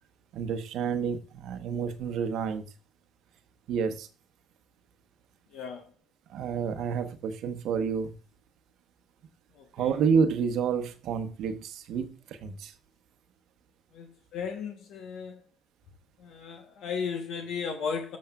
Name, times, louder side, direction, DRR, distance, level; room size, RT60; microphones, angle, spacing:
voice 1, 0.3-2.6 3.7-4.1 6.3-8.1 9.7-12.7, right 6 dB, 75° right, 1.0 m, -29 dB
voice 2, 5.5-5.9 9.6-9.9 13.9-14.1 14.3-15.4 16.2-18.2, left 6 dB, 75° left, 1.0 m, -35 dB
13.5 x 6.3 x 2.3 m
supercardioid pair, 80°, 0 cm